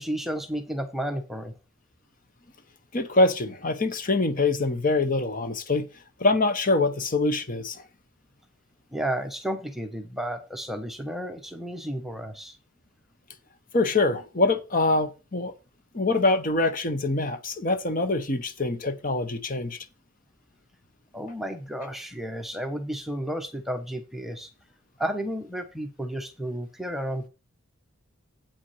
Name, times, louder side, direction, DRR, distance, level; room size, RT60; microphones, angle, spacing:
voice 1, 0.0-1.5 8.9-12.6 21.1-24.5 25.0-27.3, equal, ahead, 0.9 m, -32 dB
voice 2, 2.9-5.9 6.2-7.8 13.7-15.5 15.9-19.8, left 2 dB, 40° left, 1.0 m, -24 dB
8.6 x 5.8 x 5.7 m
head